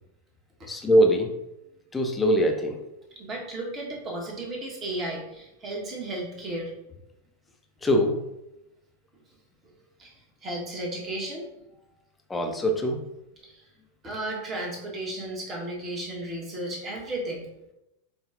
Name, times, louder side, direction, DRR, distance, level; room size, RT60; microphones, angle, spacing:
voice 1, 0.7-1.3 1.9-2.8 7.8-8.1 12.3-13.0, equal, 10° left, 2 dB, 0.6 m, -22 dB
voice 2, 3.1-6.7 10.0-11.4 13.4-13.6 14.0-17.5, right 1 dB, 25° right, -1 dB, 1.2 m, -34 dB
5.0 x 2.3 x 3.7 m, 0.91 s
figure-of-eight pair, 90°, 0 cm